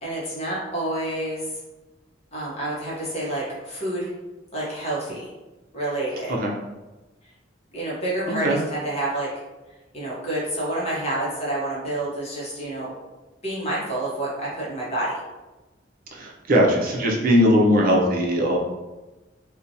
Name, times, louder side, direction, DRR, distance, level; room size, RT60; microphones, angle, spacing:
voice 1, 0.0-1.5 2.3-4.1 4.5-5.3 5.7-6.3 7.7-9.3 9.9-12.9 13.4-15.1, right 1 dB, 35° left, -6 dB, 0.8 m, -28 dB
voice 2, 8.3-8.6 16.1-18.6, equal, 50° right, -1 dB, 0.5 m, -20 dB
2.8 x 2.1 x 2.6 m, 1.1 s
head